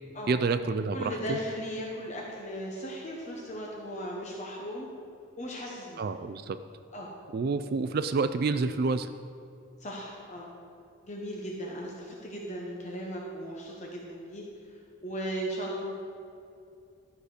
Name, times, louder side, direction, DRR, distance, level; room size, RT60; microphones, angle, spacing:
voice 1, 0.3-1.4 6.0-6.6 7.3-9.1, right 4 dB, 45° right, 11 dB, 0.3 m, -28 dB
voice 2, 0.9-4.9 5.4-6.0 6.9-7.1 7.7-7.8 9.8-10.5 11.0-14.4 15.0-15.9, equal, 30° left, -2 dB, 1.0 m, -37 dB
12.5 x 6.5 x 4.9 m, 2.5 s
head